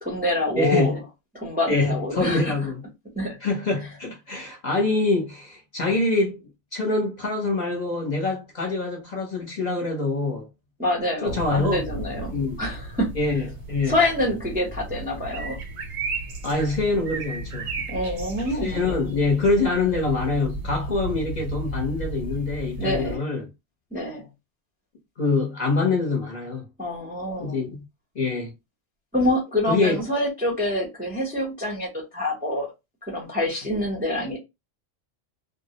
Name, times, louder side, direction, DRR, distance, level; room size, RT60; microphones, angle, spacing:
voice 1, 0.0-1.0 1.3-2.7 3.1-3.4 10.8-12.3 12.6-13.4 13.9-15.6 17.9-18.9 22.8-23.3 23.9-24.3 26.8-27.7 29.1-32.7 33.1-34.4, left 1 dB, 10° right, 0.5 m, -26 dB
voice 2, 0.6-1.0 1.7-2.8 3.4-6.4 6.7-10.5 11.2-11.8 12.3-12.6 13.2-13.9 16.4-17.7 18.6-23.4 25.2-26.7 27.4-27.8 28.1-28.5 29.7-30.0, left 3 dB, 45° left, 0.8 m, -25 dB
sound 1, 11.2-23.2, right 2 dB, 75° right, 1.0 m, -34 dB
2.3 x 2.0 x 2.7 m
omnidirectional pair, 1.2 m